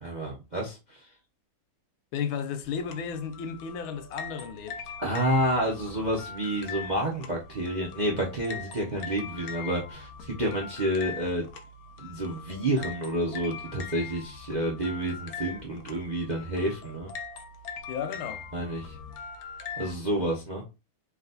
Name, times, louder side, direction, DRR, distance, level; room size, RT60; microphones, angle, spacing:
voice 1, 0.0-0.8 5.0-11.5 12.0-17.1 18.5-19.0 19.8-20.6, right 1 dB, 40° right, 0.6 m, -29 dB
voice 2, 2.1-5.0 17.9-18.5, left 7 dB, 85° left, 1.6 m, -34 dB
sound 1, 2.6-19.9, left 5 dB, 70° left, 0.9 m, -41 dB
4.0 x 2.5 x 4.0 m
omnidirectional pair, 2.2 m